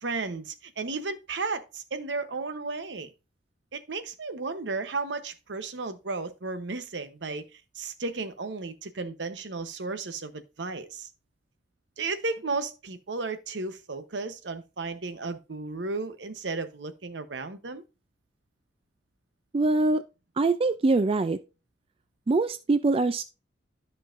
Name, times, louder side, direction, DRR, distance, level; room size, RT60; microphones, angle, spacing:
voice 1, 0.0-3.1 3.7-11.1 12.0-17.8, right 3 dB, 80° right, 0.9 m, -34 dB
voice 2, 19.5-20.0 20.4-21.4 22.3-23.2, right 3 dB, 30° right, 0.4 m, -23 dB
12.5 x 5.5 x 2.5 m
head